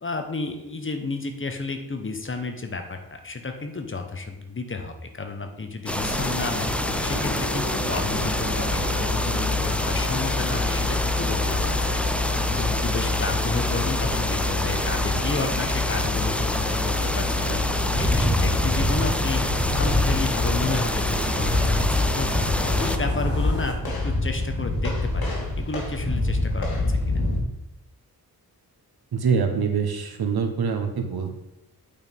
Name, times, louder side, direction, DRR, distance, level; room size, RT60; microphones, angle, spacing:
voice 1, 0.0-6.7 7.0-12.0 12.3-17.6 17.9-19.4 19.7-22.5 22.8-27.2, left 3 dB, 35° left, 6 dB, 1.0 m, -32 dB
sound 1, 5.9-23.7, left 2 dB, 50° left, 2.5 m, -28 dB
sound 2, 5.9-23.0, left 1 dB, 5° left, 0.4 m, -28 dB
sound 3, 17.9-27.4, left 2 dB, 75° left, 2.6 m, -25 dB
voice 2, 29.1-31.3, right 6 dB, 75° right, 4 dB, 1.3 m, -24 dB
8.8 x 4.8 x 5.3 m, 0.90 s
wide cardioid pair, 145°, 37 cm